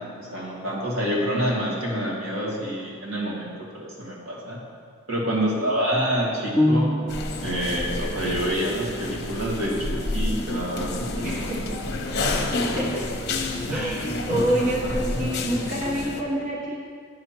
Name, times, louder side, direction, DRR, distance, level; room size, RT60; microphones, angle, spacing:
voice 1, 0.0-4.6 5.1-7.0 7.4-12.0 13.7-13.9, equal, 85° right, -5 dB, 2.2 m, -27 dB
voice 2, 5.4-5.7 11.2-11.6 12.6-13.2 13.7-16.8, right 1 dB, 40° right, -4 dB, 1.0 m, -27 dB
sound 1, 6.6-7.6, left 1 dB, 5° right, 0.3 m, -22 dB
sound 2, 7.1-16.2, left 2 dB, 50° left, 0.8 m, -29 dB
10.5 x 5.6 x 4.4 m, 2.1 s
head